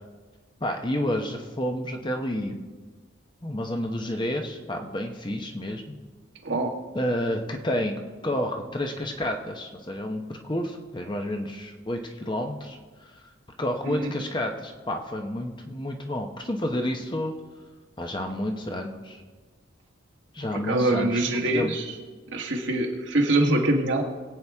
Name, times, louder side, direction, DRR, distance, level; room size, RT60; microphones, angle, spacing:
voice 1, 0.6-2.6 3.4-6.0 6.9-12.8 13.6-17.3 18.0-19.2 20.3-21.7, left 1 dB, 25° left, 3 dB, 0.9 m, -30 dB
voice 2, 20.5-21.8 22.3-24.0, right 2 dB, 65° right, 1 dB, 1.6 m, -24 dB
22.0 x 8.4 x 3.6 m, 1.4 s
head